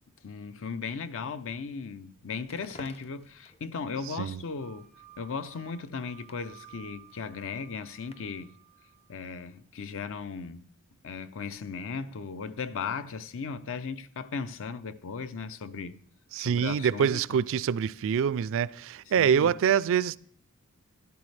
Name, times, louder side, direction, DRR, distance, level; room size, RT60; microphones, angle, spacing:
voice 1, 0.2-4.9 5.2-8.6 9.1-10.7 11.0-16.0 16.4-17.4 19.2-19.5, left 5 dB, 65° left, 0.6 m, -37 dB
Crackle, 2.4-8.5, left 2 dB, 30° left, 0.7 m, -55 dB
sound 1, 4.6-9.4, right 15 dB, 80° left, 3.2 m, -56 dB
voice 2, 16.3-20.2, right 7 dB, 65° right, 0.3 m, -25 dB
12.5 x 12.0 x 3.3 m
head